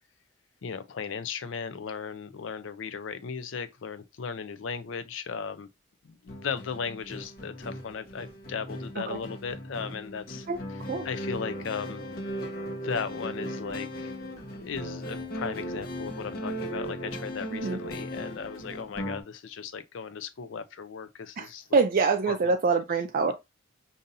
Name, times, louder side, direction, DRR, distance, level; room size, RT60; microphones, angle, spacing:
voice 1, 0.6-5.7 6.0-10.5 11.0-12.0 12.8-14.2 14.5-21.8 22.3-22.4, left 6 dB, 70° left, 0.5 m, -36 dB
sound 1, 6.3-19.2, equal, 50° left, 1.0 m, -37 dB
voice 2, 21.4-23.3, right 4 dB, 45° right, 0.4 m, -25 dB
5.3 x 2.7 x 2.6 m
head